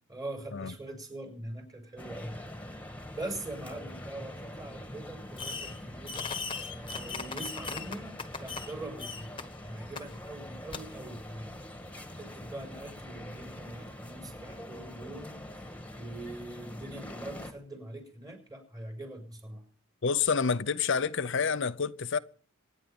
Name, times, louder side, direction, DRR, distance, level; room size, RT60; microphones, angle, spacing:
voice 1, 0.1-2.4 3.1-8.1 8.4-11.5 12.2-15.4 16.0-19.6, right 2 dB, 20° right, 5.9 m, -43 dB
sound 1, 2.0-17.5, left 1 dB, 5° left, 2.2 m, -44 dB
Fireworks, 5.4-5.8 6.1-8.7 9.0-9.4 10.0-10.1 10.7-10.8, left 4 dB, 25° left, 1.6 m, -38 dB
voice 2, 20.0-22.2, left 5 dB, 60° left, 0.7 m, -28 dB
25.5 x 10.0 x 5.3 m
head